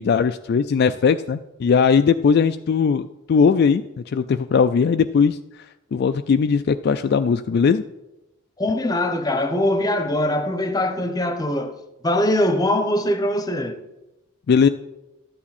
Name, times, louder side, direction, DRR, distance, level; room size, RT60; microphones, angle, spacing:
voice 1, 0.0-5.6 5.9-7.8 14.5-14.7, left 6 dB, 50° left, 0.3 m, -19 dB
voice 2, 8.6-11.8 12.0-13.8, left 1 dB, 20° left, 0.8 m, -22 dB
12.5 x 8.6 x 4.2 m
head